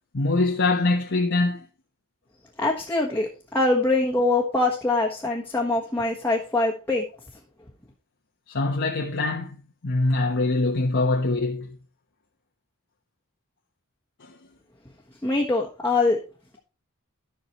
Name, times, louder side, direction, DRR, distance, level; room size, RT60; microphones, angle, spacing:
voice 1, 0.1-1.7 8.5-11.8 14.2-14.3, left 2 dB, 55° left, 1.1 m, -24 dB
voice 2, 2.6-7.0 15.2-16.2, left 2 dB, 10° left, 1.3 m, -23 dB
13.5 x 5.9 x 3.0 m
head